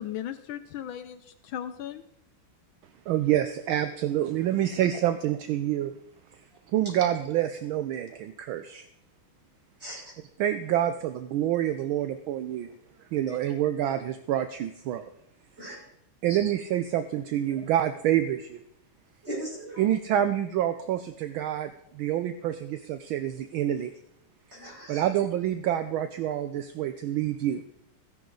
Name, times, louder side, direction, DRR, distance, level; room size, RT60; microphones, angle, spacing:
voice 1, 0.0-2.0, left 10 dB, 75° left, 10 dB, 1.3 m, -37 dB
voice 2, 3.1-5.9 6.7-8.8 10.4-12.7 13.1-15.1 16.2-18.6 19.8-23.9 24.9-27.6, right 11 dB, 75° right, 10 dB, 1.4 m, -27 dB
voice 3, 19.2-19.8 24.5-25.0, right 1 dB, 30° right, -6 dB, 6.6 m, -38 dB
15.5 x 10.5 x 3.9 m, 0.78 s
omnidirectional pair, 2.4 m